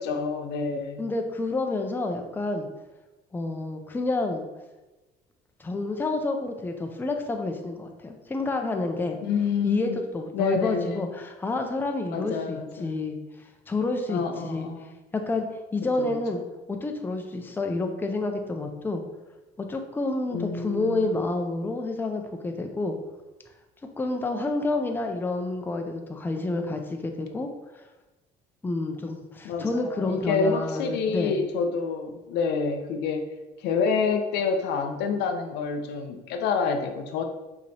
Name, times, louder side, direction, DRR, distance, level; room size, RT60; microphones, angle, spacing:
voice 1, 0.0-1.0 9.2-10.0 10.3-11.1 12.1-13.0 14.1-14.9 16.0-16.2 20.3-21.2 29.4-33.3 33.6-37.2, left 5 dB, 85° left, 6 dB, 0.5 m, -28 dB
voice 2, 1.0-2.7 3.3-4.4 5.6-9.2 9.6-13.2 13.7-14.7 15.1-15.5 15.7-16.4 16.7-19.0 19.6-22.9 24.0-27.5 28.6-31.4, left 2 dB, 10° left, 4 dB, 0.4 m, -29 dB
5.1 x 2.9 x 2.8 m, 1.1 s
cardioid pair, 110°, 17 cm